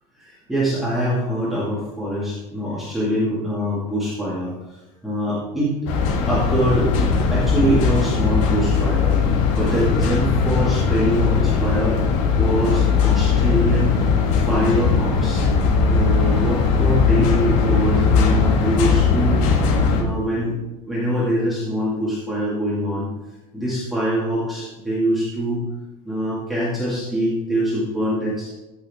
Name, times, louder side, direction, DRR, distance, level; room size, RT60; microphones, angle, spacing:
voice 1, 0.2-5.7 6.3-9.2 9.5-12.0 12.3-14.0 14.5-15.5 15.9-19.4 19.9-20.5 20.8-23.1 23.5-25.6 26.0-28.5, equal, ahead, -10 dB, 2.2 m, -23 dB
sound 1, 5.9-20.0, left 5 dB, 75° left, 2.0 m, -19 dB
15.0 x 6.5 x 3.6 m, 1.1 s
cardioid pair, 180°, 16 cm